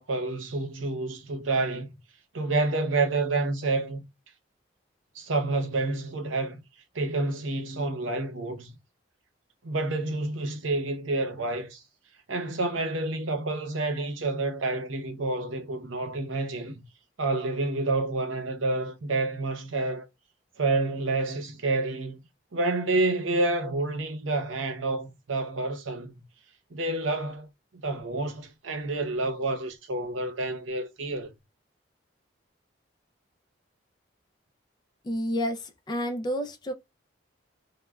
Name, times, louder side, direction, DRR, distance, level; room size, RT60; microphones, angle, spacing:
voice 1, 0.0-1.9 2.3-4.0 5.1-6.6 6.9-8.7 9.6-11.8 12.3-16.8 17.2-20.1 20.6-22.2 22.5-26.2 26.7-31.3, right 2 dB, 85° right, 0.7 m, -29 dB
voice 2, 35.0-36.7, equal, 20° left, 0.4 m, -30 dB
3.2 x 2.1 x 2.3 m
head